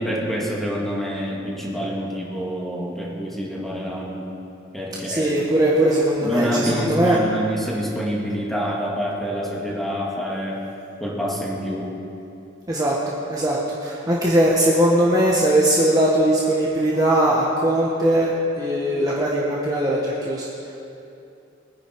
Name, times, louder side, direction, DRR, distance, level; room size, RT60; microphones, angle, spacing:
voice 1, 0.0-4.2 4.7-5.6 6.2-10.6 11.0-11.9, equal, ahead, -4 dB, 2.4 m, -27 dB
voice 2, 5.1-7.2 12.7-20.5, right 1 dB, 20° right, -4 dB, 1.4 m, -20 dB
23.0 x 10.0 x 4.7 m, 2.8 s
head